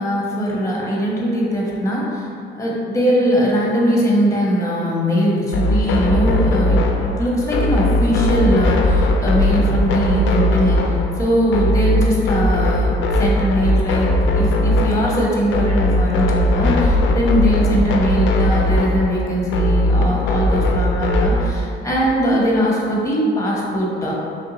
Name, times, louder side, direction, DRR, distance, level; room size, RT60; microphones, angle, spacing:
voice 1, 0.0-2.3 2.5-24.1, equal, 15° left, -4 dB, 1.0 m, -20 dB
sound 1, 5.5-21.5, left 1 dB, 75° left, 0.4 m, -18 dB
3.5 x 2.6 x 3.9 m, 2.5 s
cardioid pair, 90°, 20 cm